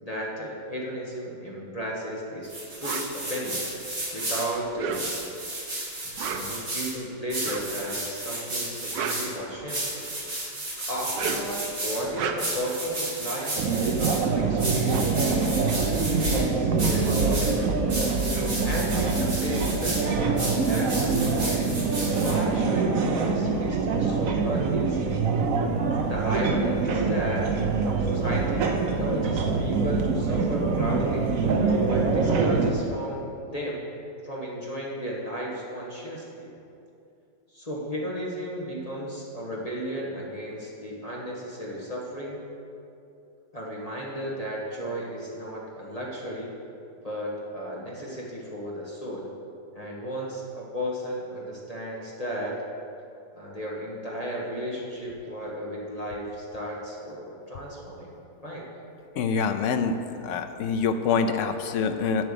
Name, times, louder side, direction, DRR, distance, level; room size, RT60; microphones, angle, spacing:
voice 1, 0.0-2.5 2.8-3.7 4.1-5.1 6.2-10.1 10.7-15.6 16.2-17.7 18.6-21.7 22.2-25.2 26.0-27.5 28.0-31.3 31.8-33.8 34.2-36.5 37.5-42.4 43.5-46.5 47.0-49.3 49.7-52.6 53.3-58.1 58.4-58.7, equal, 25° left, -5 dB, 1.4 m, -34 dB
sound 1, 2.4-4.5 4.9-6.9 7.3-9.3 9.7-12.0 12.4-14.2 14.6-16.4 16.8-17.5 17.9-20.0 20.4-22.3, right 1 dB, 40° right, 2.7 m, -33 dB
sound 2, 2.8-3.1 4.6-5.4 6.0-6.6 7.4-7.8 8.7-10.0 11.0-11.6 12.0-12.7 14.2-14.3 14.6-16.3, right 6 dB, 85° right, 1.4 m, -34 dB
sound 3, 13.6-32.7, right 4 dB, 60° right, 1.0 m, -25 dB
voice 2, 59.2-62.3, left 5 dB, 70° left, 7 dB, 0.7 m, -26 dB
9.0 x 7.7 x 6.8 m, 2.6 s
omnidirectional pair, 1.9 m